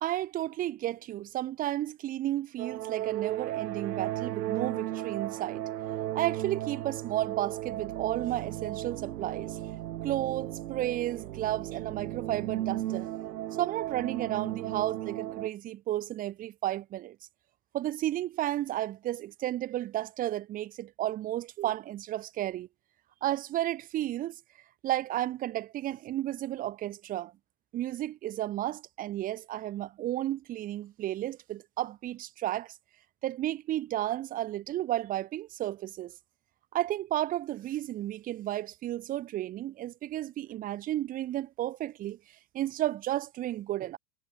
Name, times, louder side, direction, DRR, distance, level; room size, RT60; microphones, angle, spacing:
voice 1, 0.0-5.6 6.1-9.6 10.0-13.1 13.6-17.2 17.7-22.7 23.2-24.4 24.8-27.3 27.7-32.8 33.2-36.2 36.7-42.2 42.5-44.0, right 14 dB, 20° right, 0.4 m, -32 dB
sound 1, 2.6-15.5, right 14 dB, 80° right, 1.0 m, -35 dB
hypercardioid pair, 100°, 47 cm